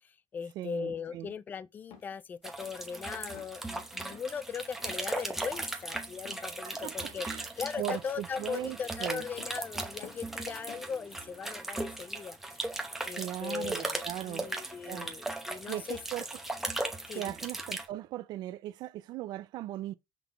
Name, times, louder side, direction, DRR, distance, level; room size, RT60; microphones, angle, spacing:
voice 1, 0.0-12.6 13.0-16.0 17.1-17.4, left 6 dB, 20° left, 0.3 m, -39 dB
voice 2, 0.6-1.3 6.6-7.5 7.8-9.2 13.1-14.5 14.9-15.1 15.7-16.3 17.1-20.0, right 14 dB, 50° right, 0.4 m, -38 dB
sound 1, 1.9-2.2 2.6-2.9 3.3-3.6 4.1-4.4 4.8-5.1 5.5-5.8 6.2-6.5 7.0-7.4 7.8-8.2 8.6-8.9 9.4-9.6 10.0-10.4 10.7-11.0, left 7 dB, 85° left, 1.9 m, -52 dB
sound 2, 2.4-17.9, right 2 dB, 5° right, 0.9 m, -38 dB
5.9 x 3.7 x 4.5 m
cardioid pair, 170°, 9 cm